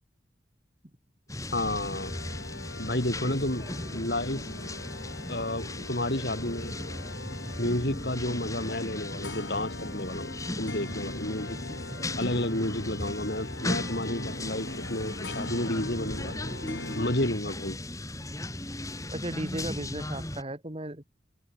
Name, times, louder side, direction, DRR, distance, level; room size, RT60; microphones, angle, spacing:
sound 1, 1.3-20.4, left 1 dB, 20° left, 3.3 m, -37 dB
voice 1, 1.5-2.1 2.8-4.5 5.3-6.8 7.6-11.6 12.2-16.3 16.9-17.8, left 1 dB, 60° left, 4.7 m, -31 dB
sound 2, 1.9-17.3, left 2 dB, 90° left, 4.1 m, -41 dB
voice 2, 19.1-21.0, right 1 dB, 30° right, 2.0 m, -35 dB
open air
head